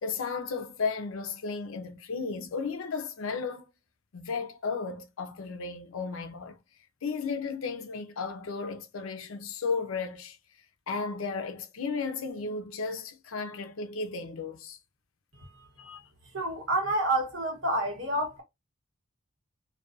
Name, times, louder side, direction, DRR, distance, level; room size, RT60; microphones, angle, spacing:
voice 1, 0.0-3.7 4.1-6.6 7.0-10.4 10.9-14.8 15.8-16.1, left 4 dB, 80° left, 0.5 m, -34 dB
voice 2, 16.3-18.4, right 1 dB, 65° right, 1.0 m, -28 dB
2.4 x 2.2 x 2.4 m
head